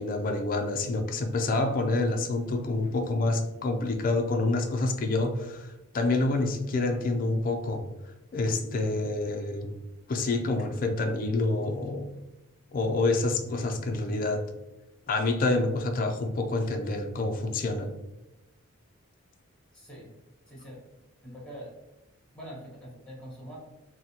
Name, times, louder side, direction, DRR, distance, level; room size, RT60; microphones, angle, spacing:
voice 1, 0.0-7.9 8.3-9.7 10.1-12.1 12.7-14.5 15.1-17.9, left 2 dB, 40° left, 0.4 m, -27 dB
voice 2, 19.7-20.1 20.5-20.8 21.2-21.7 22.3-23.6, equal, 5° left, 1.1 m, -44 dB
3.9 x 2.1 x 2.8 m
head